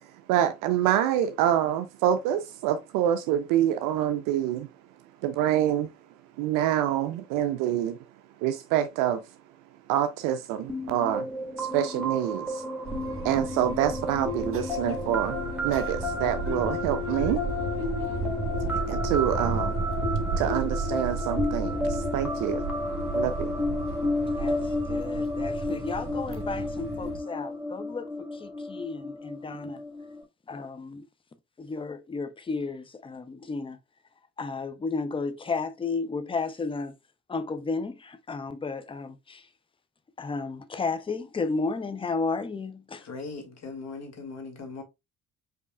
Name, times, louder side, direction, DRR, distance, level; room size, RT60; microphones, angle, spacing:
voice 1, 0.3-4.7 5.2-5.9 6.4-8.0 8.4-9.2 9.9-11.3 11.6-12.6 13.2-15.4 15.6-17.4 18.9-19.8 20.4-22.6 23.1-23.5, right 11 dB, 50° right, 0.5 m, -26 dB
sound 1, 10.7-30.2, left 2 dB, 5° right, 1.5 m, -32 dB
sound 2, 12.9-27.2, right 4 dB, 30° right, 1.2 m, -34 dB
voice 2, 24.3-29.8 30.5-31.1 31.6-33.8 34.4-37.0 37.3-39.5 40.2-43.1, left 4 dB, 15° left, 0.6 m, -33 dB
voice 3, 43.0-44.8, left 4 dB, 40° left, 1.7 m, -39 dB
5.2 x 4.2 x 2.3 m
figure-of-eight pair, 50°, 42 cm